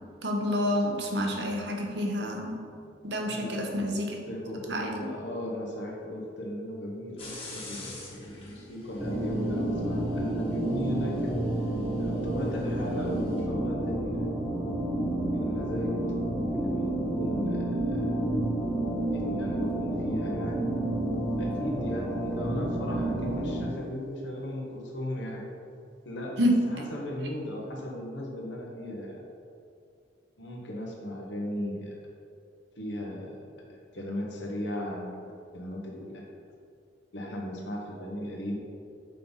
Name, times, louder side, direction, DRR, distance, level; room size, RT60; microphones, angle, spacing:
voice 1, 0.2-2.6 3.0-4.2 4.7-5.1 26.4-26.5, equal, 70° right, 1 dB, 1.0 m, -28 dB
voice 2, 3.2-3.7 4.3-11.4 12.0-14.3 15.3-16.0 16.5-18.1 19.1-20.7 21.4-25.5 26.0-29.2 30.4-31.9 32.8-35.3 35.5-36.2 37.1-38.5, left 1 dB, 80° left, -1 dB, 1.3 m, -37 dB
sound 1, 7.2-13.4, left 2 dB, 30° left, 1.5 m, -47 dB
sound 2, 9.0-23.6, right 1 dB, 25° right, 1.2 m, -30 dB
6.6 x 5.4 x 4.1 m, 2.4 s
head